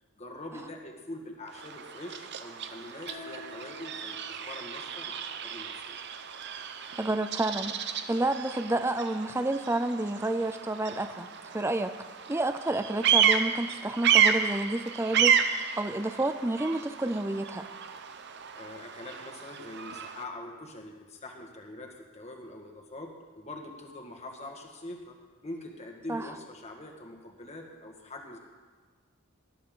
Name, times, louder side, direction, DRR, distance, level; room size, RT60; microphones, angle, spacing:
voice 1, 0.2-6.0 18.6-25.2 25.4-28.4, left 1 dB, 30° left, 2 dB, 1.7 m, -44 dB
Bird vocalization bird call bird song, 1.5-20.2, right 8 dB, 50° right, 0.7 m, -31 dB
sound 1, 3.1-6.3, left 3 dB, 90° left, 1.4 m, -50 dB
voice 2, 7.0-11.9 12.3-17.7 26.1-26.3, right 2 dB, 10° right, 8 dB, 0.5 m, -30 dB
19.5 x 13.0 x 3.8 m, 1.5 s
head